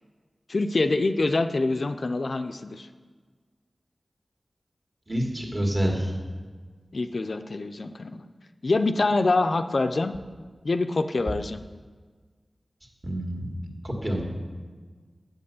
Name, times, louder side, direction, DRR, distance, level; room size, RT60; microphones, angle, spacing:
voice 1, 0.5-2.9 6.9-8.2 8.6-10.2 10.6-11.6, left 3 dB, 65° left, 9 dB, 0.4 m, -25 dB
voice 2, 5.1-6.2 13.0-14.2, equal, 35° right, 0 dB, 1.8 m, -28 dB
7.3 x 5.4 x 6.8 m, 1.5 s
cardioid pair, 45°, 0 cm